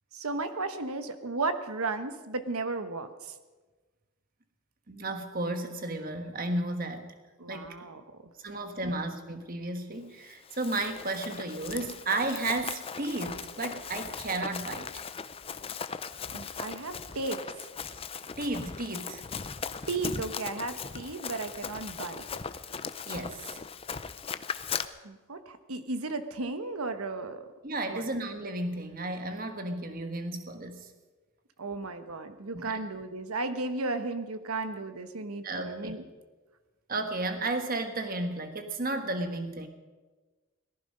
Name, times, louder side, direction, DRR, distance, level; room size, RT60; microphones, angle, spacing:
voice 1, 0.1-3.3 7.4-8.0 8.5-8.9 16.3-17.4 19.9-22.2 25.0-27.4 27.9-28.1 31.6-36.0, right 3 dB, 80° right, 10 dB, 1.2 m, -34 dB
voice 2, 4.9-7.1 7.5-7.7 8.4-15.0 18.4-19.2 23.1-23.6 27.6-30.9 32.6-32.8 35.4-35.9 36.9-39.7, right 2 dB, 40° right, 7 dB, 1.4 m, -33 dB
Run, 10.3-24.9, left 6 dB, 25° left, 0.5 m, -38 dB
18.0 x 15.0 x 5.4 m, 1.3 s
head